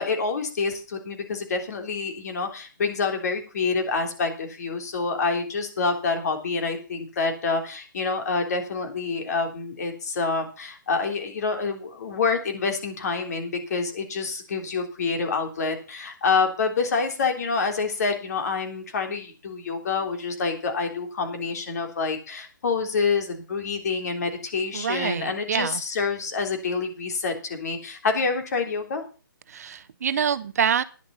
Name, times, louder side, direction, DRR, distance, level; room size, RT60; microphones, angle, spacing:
voice 1, 0.0-29.0, left 4 dB, 50° left, 4 dB, 3.4 m, -27 dB
voice 2, 24.7-25.8 29.5-30.8, right 8 dB, 50° right, 15 dB, 0.7 m, -26 dB
11.0 x 10.5 x 5.5 m, 0.35 s
hypercardioid pair, 160°, 11 cm